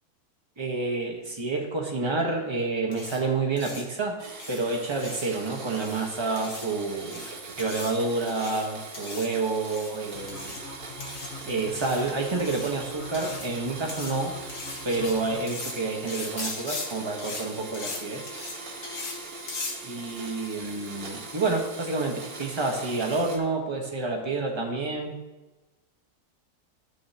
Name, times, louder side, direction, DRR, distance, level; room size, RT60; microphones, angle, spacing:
voice 1, 0.6-4.2 4.5-10.6 11.4-14.3 14.8-18.3 19.8-25.2, right 3 dB, 20° right, 1 dB, 1.1 m, -29 dB
sound 1, 2.9-3.2 3.6-3.8 4.4-4.6 5.0-5.3 5.7-6.0 6.4-6.7 7.0-7.3 7.6-7.9 8.3-8.6 8.9-9.3 9.6-9.9 10.3-10.6 11.0-11.3 11.8-12.0 12.4-12.7 13.1-13.5 13.9-14.1 14.5-15.1 15.5-15.7 16.1-16.9 17.2-17.4 17.7-18.0 18.3-18.5 18.8-19.2 19.5-19.7, left 3 dB, 80° left, 2.0 m, -38 dB
Domestic sounds home sounds, 4.2-23.4, right 3 dB, 70° right, 1.7 m, -41 dB
sound 2, 10.1-16.1, left 3 dB, 45° left, 1.3 m, -43 dB
13.0 x 6.4 x 2.9 m, 1.1 s
omnidirectional pair, 1.6 m